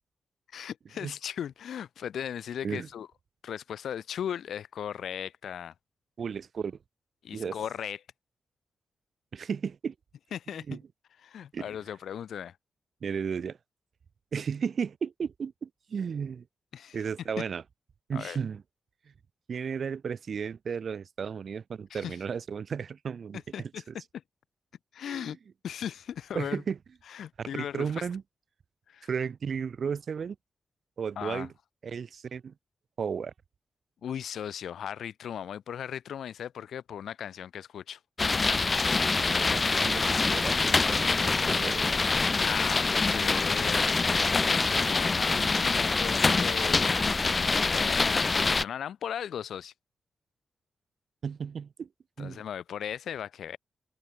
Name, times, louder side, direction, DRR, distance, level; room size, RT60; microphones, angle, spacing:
voice 1, 0.5-3.1 3.4-5.7 7.2-8.0 10.3-10.6 11.2-12.6 16.7-17.0 18.1-18.4 21.9-22.2 23.5-23.8 24.1-24.2 24.9-25.4 25.6-26.6 27.1-28.0 28.9-29.1 31.2-31.5 34.0-38.0 42.4-49.7 52.2-53.6, left 9 dB, 90° left, 4.8 m, -37 dB
voice 2, 6.2-6.8 7.3-7.6 9.3-9.9 10.7-10.8 11.5-11.6 13.0-13.6 14.3-16.5 16.9-17.6 18.1-18.6 19.5-23.7 25.1-25.3 26.3-26.8 27.4-28.2 29.1-30.4 31.0-31.5 31.8-32.5 33.0-33.3 39.4-42.1 51.2-51.9 52.2-52.4, right 6 dB, 65° right, 1.4 m, -34 dB
sound 1, 38.2-48.6, left 3 dB, 40° left, 1.0 m, -25 dB
cardioid pair, 75°, 0 cm